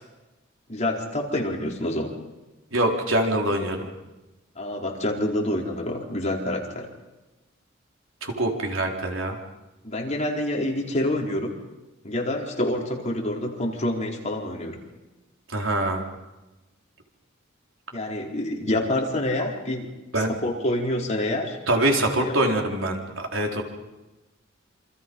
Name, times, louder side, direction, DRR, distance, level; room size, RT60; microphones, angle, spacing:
voice 1, 0.7-2.2 4.6-6.9 9.8-11.6 12.0-14.8 17.9-21.6 22.1-22.3, left 1 dB, 35° left, 0 dB, 4.5 m, -27 dB
voice 2, 2.7-3.9 8.2-9.4 15.5-16.0 20.1-20.3 21.7-23.6, right 1 dB, 70° right, 2 dB, 4.3 m, -24 dB
28.0 x 27.0 x 5.6 m, 1.1 s
head